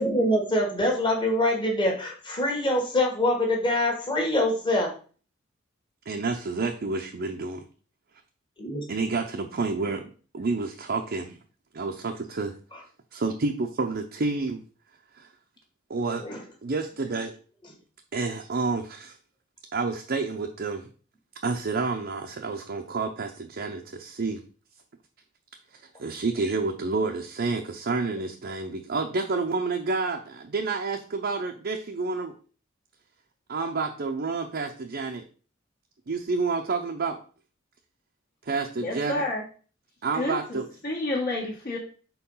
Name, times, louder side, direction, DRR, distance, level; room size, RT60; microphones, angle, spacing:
voice 1, 0.0-4.9 8.6-8.8 12.7-12.8 16.2-16.4, left 1 dB, 25° left, 1 dB, 1.5 m, -24 dB
voice 2, 6.1-7.6 8.9-10.0 10.3-11.4 11.7-12.5 13.1-14.6 15.1-15.3 15.9-16.2 16.6-17.3 18.1-19.2 19.7-20.9 21.4-24.4 25.7-32.3 33.5-35.2 36.1-37.2 38.4-39.2 40.0-40.7, right 3 dB, 50° right, 2 dB, 0.6 m, -29 dB
voice 3, 38.8-39.4 40.1-41.8, left 2 dB, 50° left, -5 dB, 1.5 m, -30 dB
4.6 x 4.0 x 5.5 m, 0.40 s
head